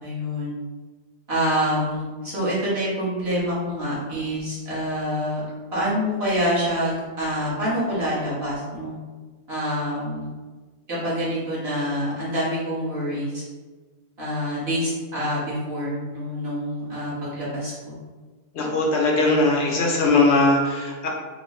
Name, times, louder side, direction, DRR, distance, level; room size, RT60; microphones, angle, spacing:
voice 1, 0.0-0.6 1.3-5.4 5.7-8.9 9.5-10.3 10.9-13.4 14.2-17.9, equal, 40° right, -9 dB, 1.4 m, -26 dB
voice 2, 18.5-21.1, left 2 dB, 60° left, -2 dB, 0.7 m, -20 dB
3.9 x 2.3 x 3.0 m, 1.4 s
omnidirectional pair, 1.8 m